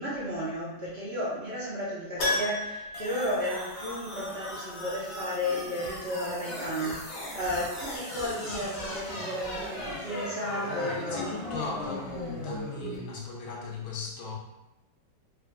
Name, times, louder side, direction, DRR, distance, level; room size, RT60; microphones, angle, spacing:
voice 1, 0.0-11.3, equal, 45° right, -10 dB, 0.9 m, -33 dB
Keyboard (musical), 2.2-4.2 4.5-4.6 7.3-7.4 7.6-7.7, left 2 dB, 60° left, 1.6 m, -33 dB
sound 1, 2.9-12.9, left 1 dB, 40° left, 1.0 m, -38 dB
voice 2, 10.7-14.3, left 4 dB, 75° left, -2 dB, 1.5 m, -38 dB
4.0 x 3.7 x 2.2 m, 0.97 s
omnidirectional pair, 2.2 m